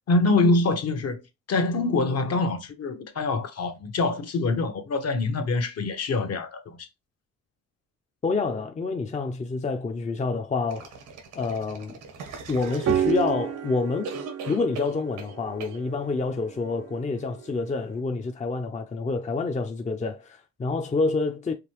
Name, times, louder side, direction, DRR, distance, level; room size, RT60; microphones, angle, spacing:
voice 1, 0.1-1.2 1.5-6.9, left 3 dB, 55° left, 1.1 m, -25 dB
voice 2, 8.2-10.9 11.4-12.0 12.5-14.1 14.5-21.5, left 4 dB, 25° left, 0.6 m, -28 dB
sound 1, 10.7-13.6 14.0-15.3 15.6-15.8, right 4 dB, 90° right, 1.3 m, -40 dB
sound 2, 12.6-17.6, right 9 dB, 55° right, 0.6 m, -31 dB
5.0 x 2.8 x 3.1 m
cardioid pair, 90°, 30 cm